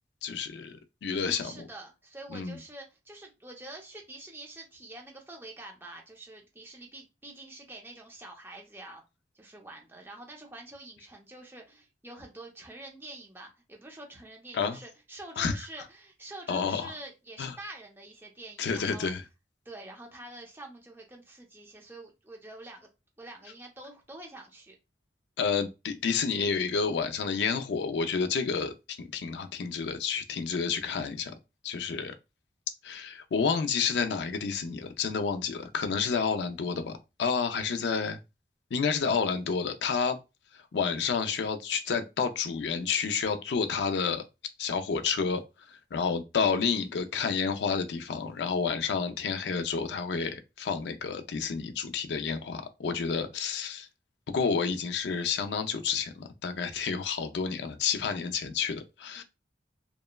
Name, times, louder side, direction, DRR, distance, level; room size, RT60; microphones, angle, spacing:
voice 1, 0.2-1.6 2.3-2.6 14.5-14.8 15.4-15.6 16.5-16.9 17.4-17.6 18.6-19.2 25.4-31.3 31.6-32.1 32.8-36.9 37.2-38.2 38.7-40.2 40.7-44.2 44.6-45.4 45.9-53.9 54.3-59.2, left 5 dB, 75° left, 0.4 m, -30 dB
voice 2, 1.1-9.0 9.3-19.1 19.6-22.9 23.2-24.8 37.5-37.9 59.1-59.2, right 2 dB, 15° right, 0.6 m, -46 dB
2.9 x 2.1 x 2.2 m
head